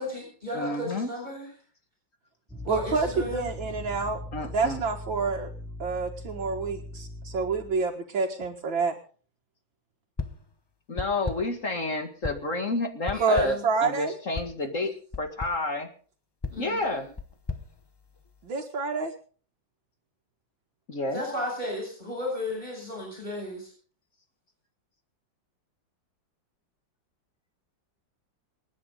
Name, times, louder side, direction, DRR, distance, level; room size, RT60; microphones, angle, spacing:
voice 1, 0.0-1.5 2.6-3.5 13.1-13.6 16.5-17.1 21.1-23.7, left 1 dB, 20° right, -3 dB, 7.5 m, -34 dB
voice 2, 0.5-1.1 4.3-4.8 10.9-13.5 13.8-15.9 16.6-17.1 20.9-21.2, left 2 dB, 45° left, 6 dB, 2.3 m, -30 dB
sound 1, 2.5-7.8, left 1 dB, 5° right, 2.3 m, -40 dB
voice 3, 2.7-4.2 4.5-5.5 5.8-8.9 13.2-14.1 18.4-19.1, right 4 dB, 80° right, 0 dB, 2.6 m, -28 dB
sound 2, 10.2-10.5 11.0-11.6 12.2-12.6 13.1-13.7 14.3-14.6 15.1-15.7 16.4-18.5, left 4 dB, 25° left, 0.5 m, -37 dB
28.5 x 10.0 x 3.9 m, 0.42 s
omnidirectional pair, 2.0 m